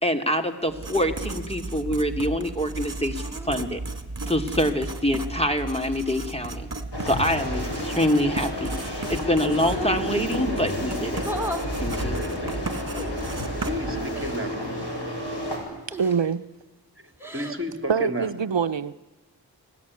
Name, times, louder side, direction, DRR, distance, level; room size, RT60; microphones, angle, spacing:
voice 1, 0.0-3.8 4.3-6.7 7.0-11.2 11.8-12.2 12.4-12.6, equal, 15° left, 5 dB, 2.6 m, -25 dB
Writing, 0.7-14.5, right 3 dB, 45° right, 2.4 m, -35 dB
sound 1, 1.1-1.4 3.1-3.7 5.0-6.1 8.2-8.9 9.4-10.0 11.2-11.7 13.0-13.1 14.1-14.5 15.9-16.4 17.1-17.6, right 1 dB, 5° right, 3.9 m, -37 dB
sound 2, 6.9-15.6, equal, 65° left, 7.8 m, -31 dB
voice 2, 13.7-14.5 17.3-18.3, equal, 30° right, 8 dB, 3.0 m, -31 dB
voice 3, 16.0-16.5 17.9-18.9, right 6 dB, 80° right, 11 dB, 0.8 m, -24 dB
30.0 x 19.5 x 9.7 m, 1.2 s
wide cardioid pair, 60°, 43 cm